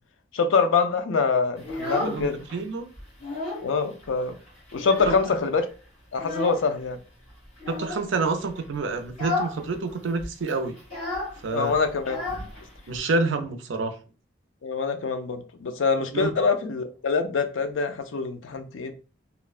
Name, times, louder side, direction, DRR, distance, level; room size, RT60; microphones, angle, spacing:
voice 1, 0.3-2.4 3.6-4.3 4.7-5.7 6.1-7.0 11.5-12.2 14.6-18.9, left 4 dB, 80° left, 0.4 m, -25 dB
Child speech kid speaking, 1.6-2.6 2.9-3.7 4.0-4.1 4.5-5.6 6.2-6.7 7.6-8.1 8.5-8.7 9.1-9.6 9.9-10.0 10.2-13.0, left 2 dB, 40° left, 1.4 m, -32 dB
voice 2, 1.9-2.9 5.1-5.2 7.7-10.8 11.4-11.7 12.9-13.9 16.1-16.3, right 3 dB, 75° right, 0.4 m, -28 dB
2.9 x 2.1 x 2.3 m
head